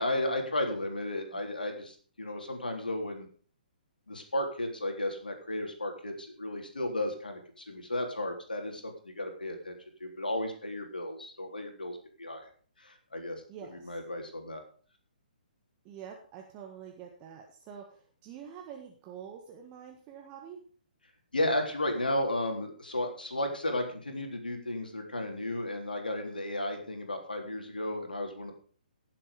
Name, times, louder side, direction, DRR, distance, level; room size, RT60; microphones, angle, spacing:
voice 1, 0.0-3.3 4.1-9.8 10.0-12.5 12.8-13.4 13.7-14.6 21.3-28.5, left 1 dB, 75° left, 3 dB, 3.6 m, -34 dB
voice 2, 13.5-14.0 15.8-20.6, right 8 dB, 25° right, 2 dB, 1.6 m, -47 dB
16.5 x 7.5 x 5.2 m, 0.43 s
figure-of-eight pair, 130°, 5 cm